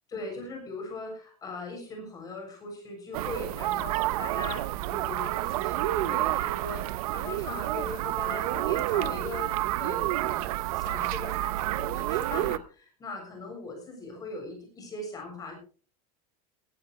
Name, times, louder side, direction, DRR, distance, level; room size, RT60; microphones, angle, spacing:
voice 1, 0.1-15.5, left 2 dB, 20° left, 3 dB, 7.1 m, -39 dB
sound 1, 3.1-12.6, right 16 dB, 75° right, 0.8 m, -29 dB
17.5 x 16.0 x 3.2 m, 0.39 s
supercardioid pair, 170°, 19 cm